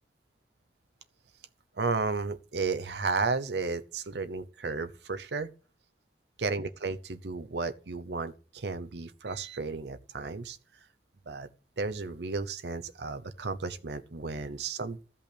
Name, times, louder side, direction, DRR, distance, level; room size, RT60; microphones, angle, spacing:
voice 1, 1.8-5.5 6.4-10.6 11.3-11.5 11.8-15.0, right 4 dB, 75° right, 0.8 m, -33 dB
14.0 x 5.6 x 8.5 m
head